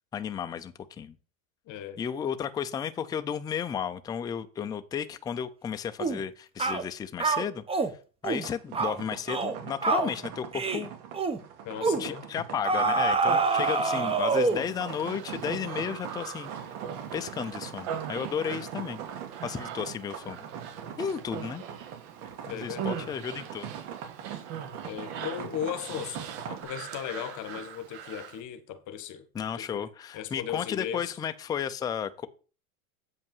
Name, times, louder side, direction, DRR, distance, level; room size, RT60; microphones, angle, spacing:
voice 1, 0.1-1.2 2.0-7.9 8.2-10.9 12.0-16.5 17.1-19.0 19.4-20.4 21.0-21.6 22.4-23.7 29.3-32.3, left 8 dB, 10° left, 0.4 m, -33 dB
voice 2, 1.7-2.0 11.6-12.3 22.5-23.1 24.8-29.3 29.5-29.9 30.1-31.1, left 9 dB, 40° left, 1.4 m, -37 dB
sound 1, 6.0-6.2 6.6-6.8 7.2-7.9 8.2-8.5 8.7-9.0 9.3-9.6 9.8-10.1 10.5-10.8 11.1-11.4 11.8-12.0 12.6-14.7, right 4 dB, 15° right, 0.9 m, -26 dB
sound 2, 8.4-26.6, right 8 dB, 80° right, 2.4 m, -41 dB
Human voice, 13.2-28.4, right 9 dB, 60° right, 1.8 m, -41 dB
8.4 x 5.3 x 5.4 m
supercardioid pair, 130°, 44 cm